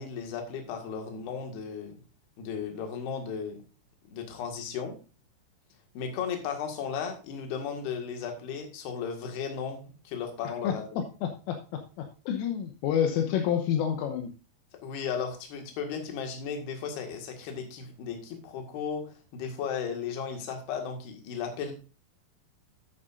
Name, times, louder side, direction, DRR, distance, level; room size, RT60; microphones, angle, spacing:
voice 1, 0.0-2.0 2.4-3.6 4.1-5.0 5.9-9.8 10.0-11.0 14.8-21.7, left 6 dB, 60° left, 4 dB, 3.4 m, -35 dB
voice 2, 11.2-11.6 12.0-14.3, left 9 dB, 80° left, 5 dB, 3.4 m, -28 dB
10.5 x 9.5 x 2.6 m, 0.34 s
omnidirectional pair, 5.9 m